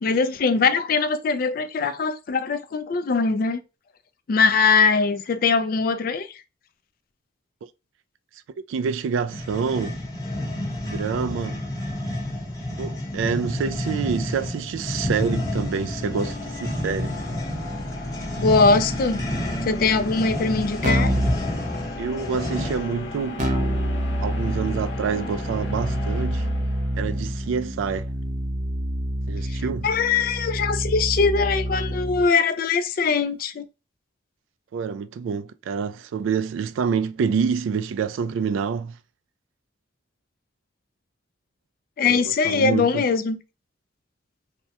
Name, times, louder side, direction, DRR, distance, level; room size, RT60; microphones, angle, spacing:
voice 1, 0.0-3.6 4.3-6.3 18.4-19.2 19.6-21.2 29.5-33.6 42.0-43.4, left 4 dB, 45° left, 0.3 m, -21 dB
voice 2, 8.7-10.0 10.8-11.6 12.8-17.1 22.0-23.4 24.2-26.5 27.0-28.1 29.3-29.9 34.7-39.0 42.1-43.0, right 6 dB, 80° right, 0.3 m, -27 dB
sound 1, 9.3-23.0, left 1 dB, 20° left, 0.8 m, -30 dB
sound 2, 14.5-27.4, left 1 dB, 70° left, 0.8 m, -36 dB
Keyboard (musical), 20.8-21.4 23.4-32.3, equal, 40° right, 0.6 m, -27 dB
3.3 x 2.1 x 2.8 m
head